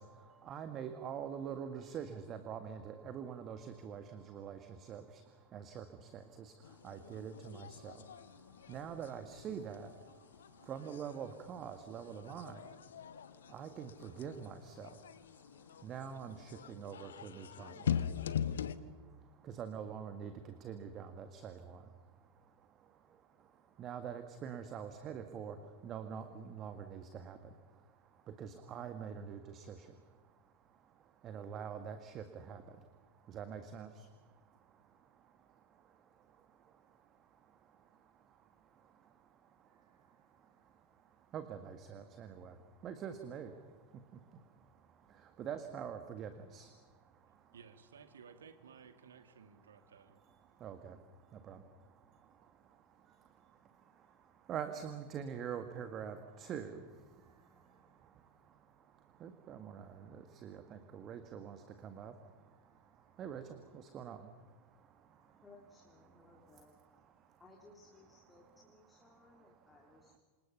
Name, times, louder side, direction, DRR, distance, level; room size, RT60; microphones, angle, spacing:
voice 1, 0.5-4.6 4.9-5.0 5.5-5.8 6.4-6.5 6.8-7.9 8.7-9.9 10.7-12.6 13.5-14.9 15.8-17.7 19.6-20.3 20.6-21.8 23.8-25.5 25.8-27.4 28.4-29.8 31.2-32.6 33.3-33.9 41.3-42.5 42.8-43.5 45.4-46.7 50.6-51.0 51.5-51.6 54.5-56.7 59.2-59.9 60.4-61.6 61.8-62.1 63.2-63.4 63.9-64.2, right 8 dB, 30° right, 1.8 m, -44 dB
sound 1, 6.6-18.8, left 8 dB, 65° left, 1.0 m, -43 dB
voice 2, 47.5-50.2, right 6 dB, 65° right, 2.2 m, -57 dB
voice 3, 65.4-66.8 67.4-70.2, left 3 dB, 10° left, 3.5 m, -61 dB
28.0 x 27.0 x 5.7 m
figure-of-eight pair, 90°, 0 cm